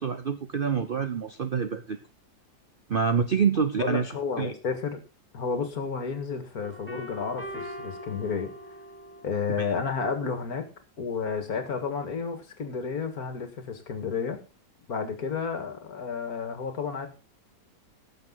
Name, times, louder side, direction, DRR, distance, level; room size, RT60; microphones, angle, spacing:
voice 1, 0.0-2.0 2.9-4.1 4.4-4.5 9.6-9.7, right 6 dB, 50° right, 9 dB, 0.6 m, -26 dB
voice 2, 3.8-5.0 5.3-8.5 9.2-10.7 11.0-14.4 14.9-17.1, left 5 dB, 60° left, 7 dB, 2.2 m, -31 dB
sound 1, 6.6-9.5, left 1 dB, 5° left, 2.1 m, -41 dB
18.5 x 7.0 x 3.9 m, 0.30 s
omnidirectional pair, 1.8 m